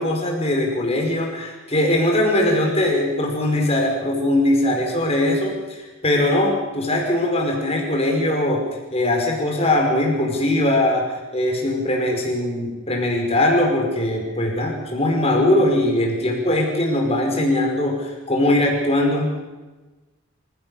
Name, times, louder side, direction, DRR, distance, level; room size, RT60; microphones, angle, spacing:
voice 1, 0.0-19.3, left 1 dB, 30° left, 1 dB, 5.2 m, -21 dB
27.5 x 16.5 x 6.6 m, 1.2 s
head